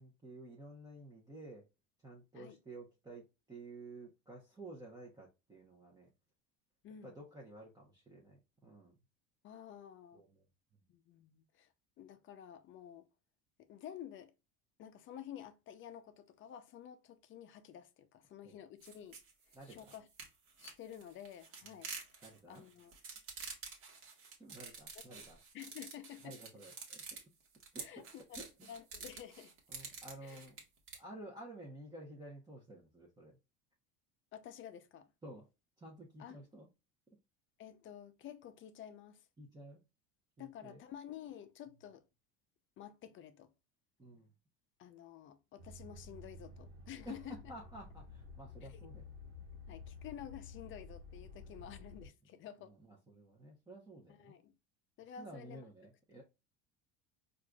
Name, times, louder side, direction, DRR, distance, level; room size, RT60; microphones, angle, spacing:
voice 1, 0.0-1.6 2.0-6.1 7.0-9.0 10.1-10.4 18.4-18.6 19.5-19.9 22.2-22.6 24.4-25.4 26.2-27.0 27.7-28.1 28.4-28.7 29.7-30.5 31.0-33.4 35.2-35.5 35.8-36.7 39.4-39.8 40.4-40.8 44.0-44.3 47.0-49.1 49.6-49.8 51.4-51.6 52.7-54.4 55.2-56.2, right 1 dB, 15° right, 0.9 m, -52 dB
voice 2, 6.8-7.2 9.4-10.2 10.9-11.7 12.0-13.1 13.6-14.3 14.8-19.2 19.5-20.1 20.6-22.9 25.1-25.2 25.5-26.4 27.8-28.4 28.7-29.5 30.2-30.5 34.3-35.1 36.2-36.4 37.6-39.3 40.4-42.0 42.8-43.5 44.8-47.4 48.6-48.9 49.7-52.7 54.1-54.5 55.0-55.6, left 10 dB, 40° left, 0.6 m, -51 dB
sound 1, 18.8-31.0, right 5 dB, 45° right, 1.3 m, -49 dB
sound 2, 45.6-52.1, left 3 dB, 90° right, 1.1 m, -52 dB
4.5 x 2.6 x 2.3 m
supercardioid pair, 110°, 30 cm